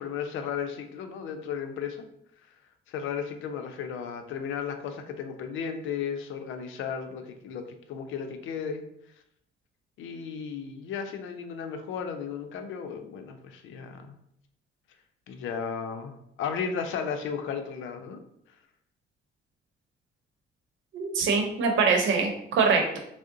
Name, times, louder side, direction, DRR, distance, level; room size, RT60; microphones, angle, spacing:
voice 1, 0.0-2.0 2.9-8.8 10.0-14.2 15.3-18.2, left 7 dB, 80° left, 6 dB, 0.5 m, -34 dB
voice 2, 20.9-23.0, right 4 dB, 75° right, 3 dB, 0.8 m, -24 dB
3.6 x 2.1 x 3.7 m, 0.74 s
cardioid pair, 90°, 20 cm